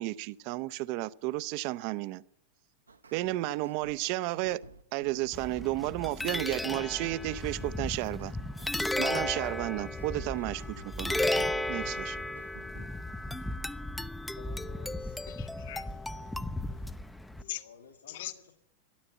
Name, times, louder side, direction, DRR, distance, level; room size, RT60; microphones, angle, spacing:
voice 1, 0.0-2.2 3.1-4.6 4.9-8.3 9.0-12.2, right 17 dB, 45° right, 0.5 m, -33 dB
sound 1, 2.9-13.0, right 4 dB, 75° right, 0.9 m, -52 dB
sound 2, 5.3-17.4, left 1 dB, 5° left, 0.6 m, -34 dB
voice 2, 14.4-15.2 17.4-18.5, left 6 dB, 75° left, 2.4 m, -53 dB
voice 3, 15.3-16.9 17.4-17.6 18.1-18.3, left 15 dB, 55° left, 0.6 m, -43 dB
13.5 x 12.5 x 7.9 m
figure-of-eight pair, 90°, 0 cm